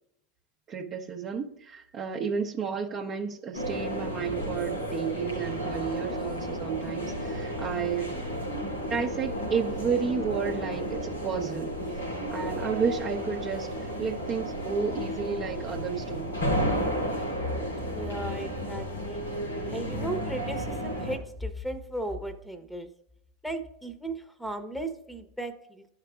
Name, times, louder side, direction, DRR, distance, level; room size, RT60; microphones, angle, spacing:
voice 1, 0.7-8.2 8.9-11.7 12.3-16.3, right 6 dB, 40° right, 0.8 m, -32 dB
sound 1, 3.5-21.2, equal, 90° left, 2.4 m, -32 dB
voice 2, 17.9-19.2 19.7-22.9 23.4-25.5, right 1 dB, ahead, 0.9 m, -36 dB
12.5 x 4.8 x 2.4 m
hypercardioid pair, 80°, 0 cm